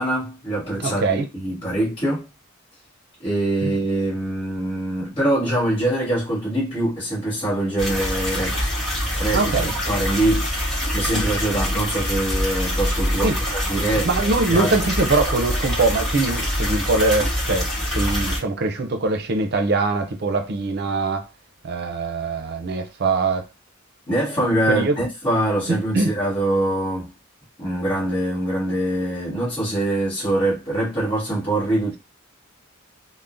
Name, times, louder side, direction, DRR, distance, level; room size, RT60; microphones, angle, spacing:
voice 1, 0.0-2.3 3.2-8.6 9.2-9.5 9.8-14.1 14.5-14.7 24.1-27.1 27.6-32.0, right 1 dB, 25° left, 1.3 m, -24 dB
voice 2, 0.8-1.3 3.6-3.8 9.3-9.7 13.2-13.4 13.8-21.3 21.6-23.5 24.7-25.0 25.7-26.2, right 3 dB, 50° right, 0.5 m, -23 dB
sound 1, 7.8-18.4, equal, ahead, 1.9 m, -25 dB
3.4 x 2.1 x 2.5 m
head